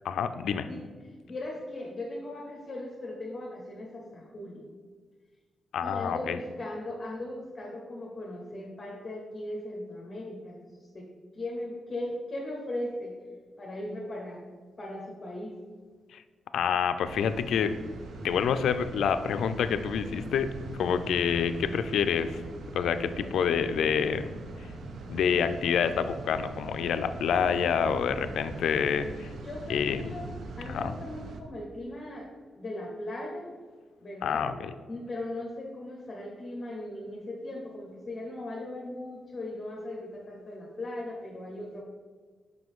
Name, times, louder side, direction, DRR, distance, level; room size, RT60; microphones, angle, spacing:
voice 1, 0.0-0.7 5.7-6.4 16.1-16.2 16.5-17.7 18.2-20.5 20.8-22.3 22.7-24.3 25.1-29.3 29.7-30.0 30.7-30.9 34.2-34.7, left 7 dB, 80° left, 10 dB, 0.4 m, -27 dB
voice 2, 1.3-4.7 5.8-10.6 10.9-11.1 11.3-13.1 13.6-14.4 14.8-15.5 29.4-32.3 32.6-33.5 34.0-34.5 34.9-41.8, left 1 dB, 30° left, -2 dB, 1.1 m, -38 dB
sound 1, 17.0-31.4, right 3 dB, 70° right, 0.6 m, -42 dB
6.0 x 5.2 x 3.6 m, 1.5 s
cardioid pair, 105°, 0 cm